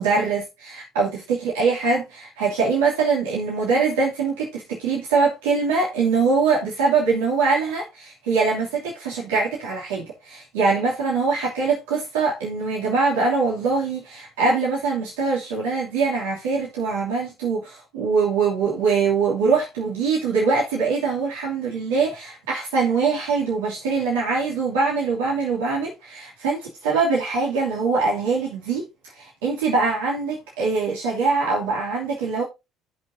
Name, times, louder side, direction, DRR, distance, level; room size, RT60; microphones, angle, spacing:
voice 1, 0.0-28.9 29.1-32.4, right 4 dB, 85° right, 2.7 m, -23 dB
15.0 x 5.7 x 2.7 m
hypercardioid pair, 60°, 0 cm